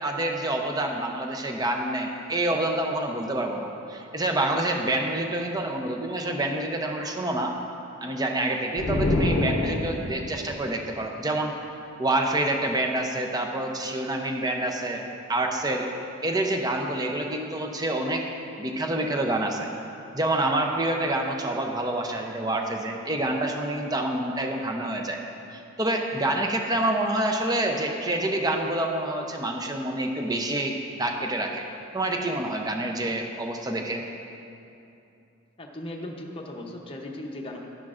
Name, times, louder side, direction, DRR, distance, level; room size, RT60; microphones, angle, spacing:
voice 1, 0.0-7.5 8.0-11.5 12.0-15.9 16.2-18.2 18.6-19.7 20.1-25.2 25.5-31.6 31.9-34.0, right 1 dB, 20° right, 2 dB, 0.6 m, -27 dB
sound 1, 8.8-10.4, left 1 dB, 85° left, 0.7 m, -25 dB
voice 2, 35.6-37.7, left 1 dB, 25° left, 0 dB, 0.7 m, -37 dB
11.5 x 10.0 x 2.5 m, 2.8 s
head